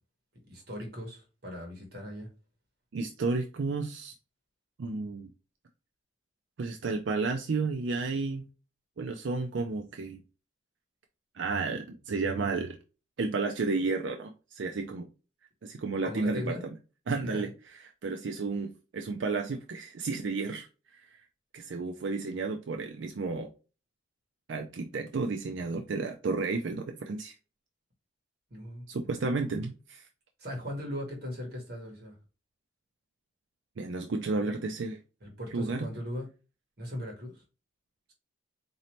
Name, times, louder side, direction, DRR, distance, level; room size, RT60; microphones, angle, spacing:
voice 1, 0.5-2.3 16.0-16.6 17.3-17.4 28.5-28.8 30.4-32.1 35.2-36.3 36.8-37.3, equal, 50° right, 1.3 m, -38 dB
voice 2, 2.9-4.1 4.8-5.3 6.6-8.5 9.0-10.2 11.3-12.8 13.2-15.1 15.6-16.7 17.1-17.5 18.0-20.7 20.9-21.2 21.5-23.5 24.5-27.3 28.9-30.1 33.8-35.0 35.5-35.9, right 3 dB, 65° right, 0.4 m, -32 dB
4.1 x 2.7 x 3.0 m
head